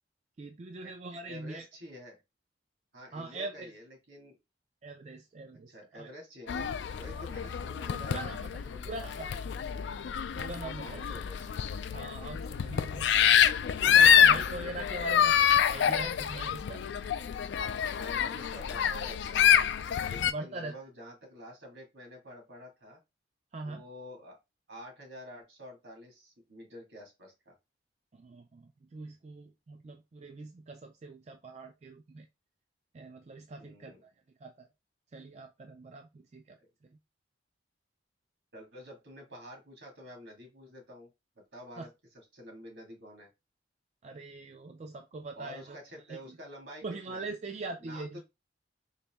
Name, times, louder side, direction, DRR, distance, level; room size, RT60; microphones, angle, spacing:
voice 1, 0.4-1.7 3.1-3.7 4.8-6.1 7.2-7.3 7.9-8.5 8.9-9.4 10.3-11.1 11.9-13.3 13.8-16.8 20.2-20.7 23.5-23.8 28.1-32.3 32.9-34.1 34.4-34.7 35.1-36.6 41.8-41.9 44.0-45.8 46.1-46.2 46.8-48.2, right 2 dB, 35° right, 0.3 m, -42 dB
voice 2, 1.3-2.2 2.9-4.4 5.7-9.7 10.8-11.5 17.9-19.6 20.0-23.0 23.6-24.4 24.7-27.5 33.6-34.0 36.6-36.7 38.5-41.1 41.5-43.3 45.3-47.3 47.8-48.2, equal, 75° right, 1.9 m, -49 dB
sound 1, 6.5-20.3, left 8 dB, 70° left, 0.3 m, -26 dB
4.0 x 2.6 x 3.4 m
head